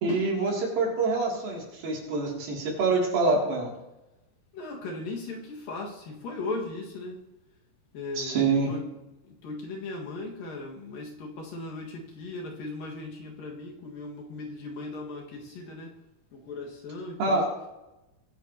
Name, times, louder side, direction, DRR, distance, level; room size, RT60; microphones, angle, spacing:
voice 1, 0.0-3.7 8.2-8.7 17.2-17.5, right 3 dB, 65° right, -2 dB, 4.5 m, -26 dB
voice 2, 4.5-7.2 7.9-8.8 9.3-16.0 16.3-17.5, left 2 dB, 65° left, -1 dB, 3.4 m, -37 dB
21.0 x 10.5 x 2.9 m, 0.97 s
omnidirectional pair, 4.5 m